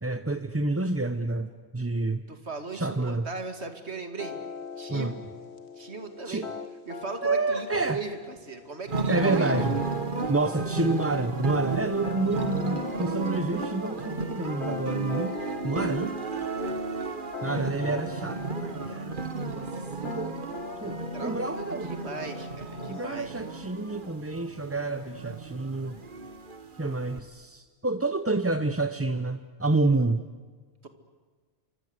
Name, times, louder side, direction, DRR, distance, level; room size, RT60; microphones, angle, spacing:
voice 1, 0.0-2.2 2.7-3.3 4.9-5.1 6.3-6.4 7.2-8.0 9.1-9.7 10.3-15.3 15.6-16.1 17.4-19.7 20.0-20.4 20.8-21.9 22.9-26.0 26.8-30.2, right 2 dB, 15° right, 10 dB, 0.7 m, -28 dB
voice 2, 2.3-4.4 4.8-5.2 5.7-6.4 6.9-9.7 21.1-23.3 30.8-30.9, right 4 dB, 85° right, 6 dB, 2.7 m, -38 dB
sound 1, 4.2-23.1, left 6 dB, 90° left, 1.7 m, -42 dB
sound 2, 8.9-27.2, right 4 dB, 50° right, 1.6 m, -33 dB
28.5 x 24.5 x 8.1 m, 1.5 s
omnidirectional pair, 1.1 m